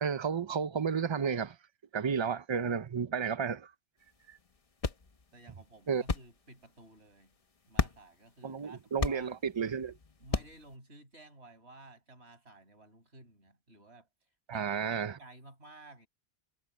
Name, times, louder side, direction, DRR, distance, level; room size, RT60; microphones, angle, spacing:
voice 1, 0.0-1.5 1.9-3.7 5.9-6.0 8.4-9.9 14.5-15.2, right 6 dB, 30° right, 0.6 m, -32 dB
sound 1, 4.0-10.8, left 4 dB, 35° left, 0.9 m, -38 dB
voice 2, 5.3-7.3 7.7-9.3 10.2-14.1 14.5-16.1, right 2 dB, 65° right, 7.0 m, -54 dB
omnidirectional pair, 1.2 m